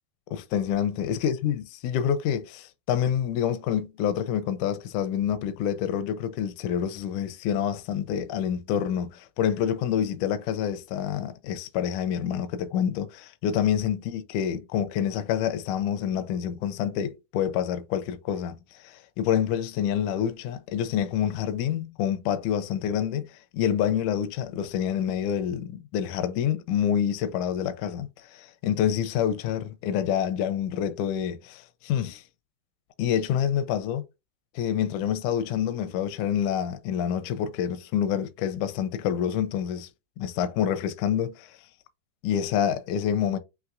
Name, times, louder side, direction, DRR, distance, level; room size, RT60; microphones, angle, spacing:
voice 1, 0.3-32.2 33.0-34.0 34.6-39.9 40.2-41.5 42.2-43.4, left 9 dB, 80° left, 1.8 m, -27 dB
5.9 x 2.9 x 2.5 m
omnidirectional pair, 4.0 m